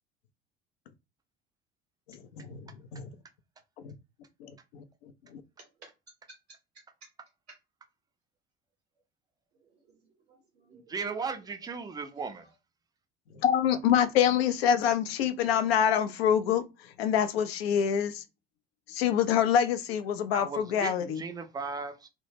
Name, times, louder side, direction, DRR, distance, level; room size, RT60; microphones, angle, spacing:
voice 1, 2.1-3.1 3.8-3.9 4.4-4.8 5.3-5.4 13.4-16.6 17.0-18.2 18.9-21.2, left 9 dB, 70° left, 0.4 m, -26 dB
voice 2, 9.6-11.4, right 4 dB, 75° right, 0.7 m, -58 dB
voice 3, 10.7-12.5 20.3-22.1, right 5 dB, 15° right, 0.4 m, -36 dB
2.1 x 2.1 x 3.2 m
figure-of-eight pair, 60°, 32 cm